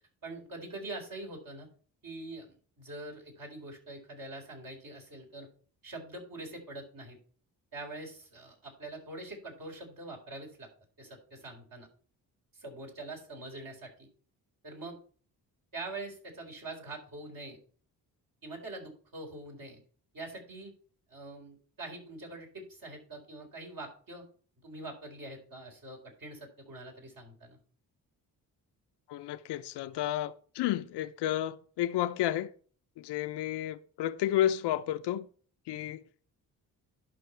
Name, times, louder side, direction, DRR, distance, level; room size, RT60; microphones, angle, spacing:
voice 1, 0.2-1.7 2.0-5.5 5.8-7.2 7.7-10.7 11.0-11.9 12.5-14.1 14.6-15.0 15.7-17.6 18.4-19.8 20.1-20.7 21.1-24.2 24.6-27.6, right 2 dB, 60° right, 4.4 m, -44 dB
voice 2, 29.1-32.5 33.0-35.3 35.7-36.0, left 12 dB, 90° left, 0.7 m, -31 dB
11.0 x 5.8 x 4.4 m
cardioid pair, 75°, 39 cm